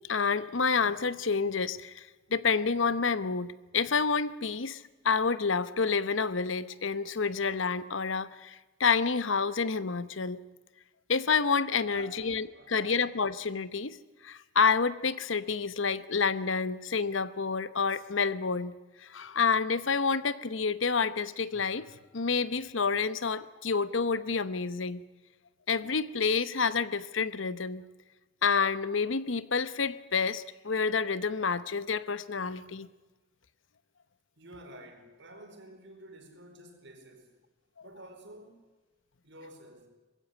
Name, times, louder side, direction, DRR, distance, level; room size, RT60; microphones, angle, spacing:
voice 1, 0.1-10.4 11.1-14.0 14.2-18.7 19.0-25.0 25.7-27.8 28.4-32.9, left 5 dB, 75° left, 15 dB, 1.0 m, -29 dB
voice 2, 11.8-13.0 34.4-37.3 37.8-38.6 39.2-39.9, right 1 dB, 65° right, 5 dB, 4.6 m, -50 dB
21.0 x 15.5 x 9.6 m, 1.2 s
head